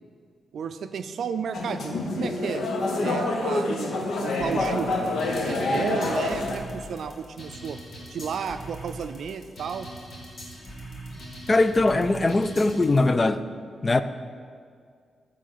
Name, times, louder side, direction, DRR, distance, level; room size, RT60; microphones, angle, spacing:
voice 1, 0.5-2.7 3.0-5.0 5.4-7.8 8.1-9.9, right 6 dB, 65° right, 0.4 m, -33 dB
sound 1, 1.5-6.6, left 2 dB, 75° left, 0.9 m, -27 dB
sound 2, 4.4-13.0, right 1 dB, 45° left, 1.8 m, -41 dB
voice 2, 11.5-13.4 13.8-14.0, left 2 dB, 25° left, 0.3 m, -21 dB
8.9 x 3.8 x 6.7 m
wide cardioid pair, 145°, 0 cm